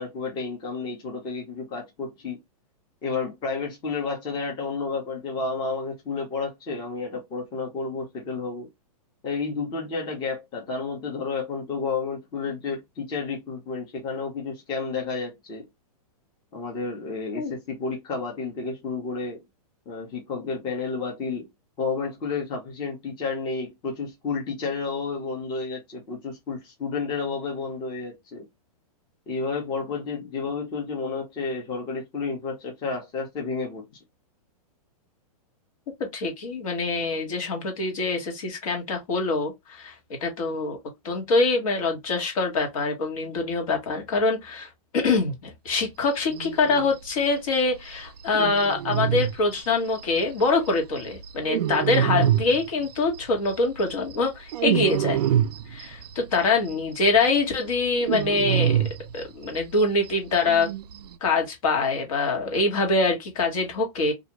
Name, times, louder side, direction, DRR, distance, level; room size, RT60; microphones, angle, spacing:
voice 1, 0.0-2.4 3.0-8.7 9.2-15.6 16.5-19.4 19.9-21.5 21.8-28.4 29.3-33.9, left 4 dB, 25° left, 0.9 m, -31 dB
voice 2, 36.1-40.8 41.0-55.2 55.7-58.8 59.1-60.7 61.2-64.1, left 3 dB, 60° left, 1.3 m, -24 dB
sound 1, 46.3-46.9 47.2-47.3 47.6-47.7 47.9-48.0 48.2-50.7 51.0-53.2 53.5-56.4 56.7-56.8 57.1-59.8 60.1-60.2 60.3-61.1, right 10 dB, 85° right, 0.4 m, -26 dB
2.6 x 2.4 x 2.9 m
hypercardioid pair, 155°, 20 cm